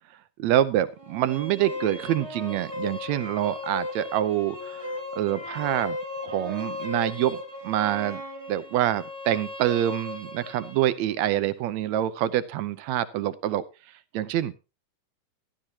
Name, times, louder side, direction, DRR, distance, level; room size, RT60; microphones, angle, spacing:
voice 1, 0.4-6.0 6.2-7.4 7.6-8.2 8.5-13.7 14.1-14.6, right 12 dB, 75° right, 14 dB, 1.8 m, -26 dB
sound 1, 1.0-10.9, left 2 dB, 20° right, 1.0 m, -36 dB
13.0 x 12.0 x 2.9 m, 0.29 s
omnidirectional pair, 3.7 m